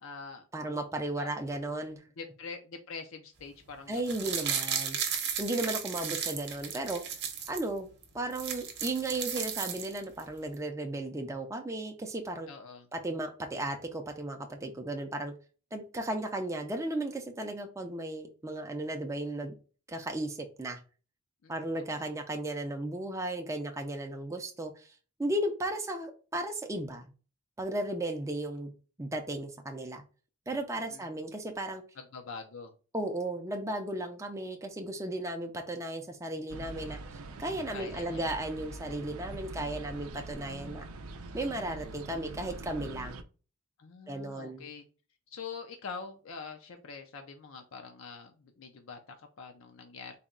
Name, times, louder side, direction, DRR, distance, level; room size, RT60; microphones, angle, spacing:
voice 1, 0.0-0.5 1.2-1.3 2.2-4.2 12.5-12.9 21.4-21.5 21.9-22.0 30.9-31.0 32.1-32.7 37.7-38.2 43.8-44.8 45.3-50.2, left 5 dB, 65° left, 5 dB, 0.5 m, -44 dB
voice 2, 0.5-2.0 3.9-5.0 5.4-7.2 7.5-7.9 8.1-12.5 12.9-15.3 15.7-19.5 19.9-20.8 21.5-24.9 25.2-27.1 27.6-28.7 29.0-30.0 30.5-31.8 32.9-40.9 41.3-43.2 44.1-44.6, right 1 dB, 15° right, 3 dB, 0.4 m, -35 dB
sound 1, 3.9-7.6 8.0-8.1 8.3-10.2 10.5-10.6, right 7 dB, 50° right, 0.8 m, -34 dB
sound 2, 36.5-43.2, right 2 dB, 75° right, 0.5 m, -43 dB
4.0 x 2.2 x 3.6 m, 0.36 s
head